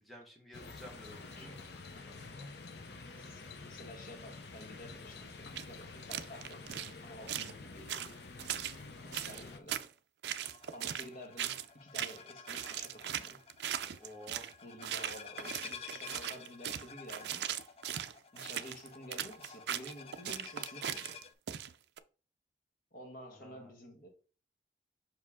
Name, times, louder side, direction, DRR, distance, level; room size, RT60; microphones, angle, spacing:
voice 1, 0.0-1.7 2.1-2.5 14.0-14.4 23.3-23.7, equal, ahead, 1.3 m, -53 dB
sound 1, 0.5-9.6, left 3 dB, 65° left, 0.7 m, -49 dB
voice 2, 2.9-8.2 9.0-9.9 10.7-13.4 14.6-17.5 18.3-21.1 22.9-24.1, left 1 dB, 50° left, 1.4 m, -51 dB
sound 2, 5.6-5.7 6.1-6.9 7.3-7.5 7.9-8.8 9.1-9.9 10.2-11.1 11.4-11.7 11.9-12.2 12.5-14.5 14.8-22.0, right 10 dB, 70° right, 0.4 m, -39 dB
sound 3, 10.4-21.3, left 6 dB, 35° left, 0.4 m, -51 dB
5.6 x 4.9 x 3.6 m
head